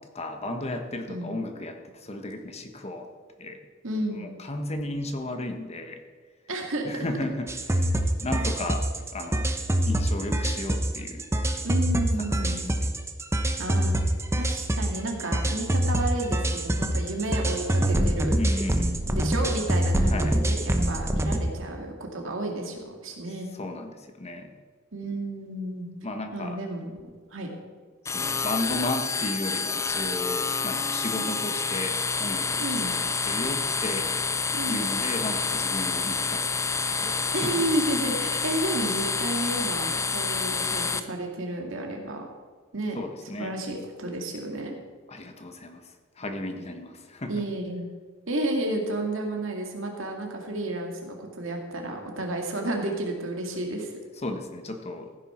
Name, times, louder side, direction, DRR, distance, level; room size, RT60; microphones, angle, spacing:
voice 1, 0.1-3.1 3.4-3.6 4.1-6.0 6.8-8.9 9.1-9.5 9.9-11.2 12.4-12.9 18.4-19.0 20.1-20.4 23.5-24.5 26.0-26.6 28.1-34.1 34.7-37.6 42.9-43.6 45.1-47.4 54.2-55.1, left 1 dB, 30° left, 5 dB, 1.2 m, -34 dB
voice 2, 3.8-4.3 6.5-6.9 11.6-12.7 13.6-14.0 14.4-18.4 19.0-23.6 24.9-25.9 26.3-26.9 27.3-27.5 31.2-31.4 32.6-32.9 34.5-34.8 37.3-42.2 42.7-43.0 43.4-44.8 47.3-47.9 48.3-53.9, right 1 dB, 70° right, 2 dB, 2.2 m, -31 dB
sound 1, 7.5-21.4, right 1 dB, 15° right, 0.9 m, -25 dB
sound 2, 28.0-41.0, left 5 dB, 15° left, 0.4 m, -28 dB
15.0 x 9.7 x 4.4 m, 1.5 s
head